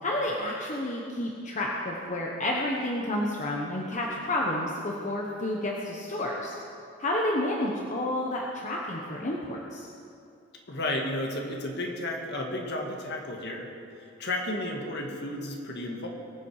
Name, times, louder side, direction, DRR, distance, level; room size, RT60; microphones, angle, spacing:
voice 1, 0.0-6.5 7.0-9.9, left 1 dB, 35° left, -2 dB, 1.1 m, -30 dB
voice 2, 10.7-13.7 14.0-16.1, left 1 dB, 55° left, 1 dB, 1.8 m, -33 dB
22.5 x 7.9 x 4.8 m, 2.5 s
head